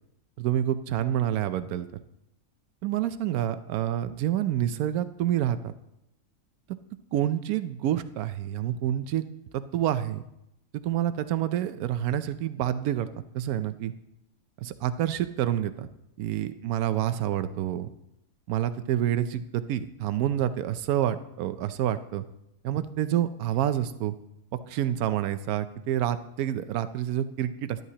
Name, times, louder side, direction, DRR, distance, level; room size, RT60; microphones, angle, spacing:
voice 1, 0.4-1.9 2.8-5.7 7.1-9.2 9.5-10.2 10.7-13.1 13.3-13.9 14.6-15.9 16.2-17.9 18.5-22.2 22.6-24.1 24.7-27.8, right 11 dB, 80° right, 12 dB, 1.1 m, -28 dB
12.0 x 11.0 x 2.9 m, 0.85 s
omnidirectional pair, 1.6 m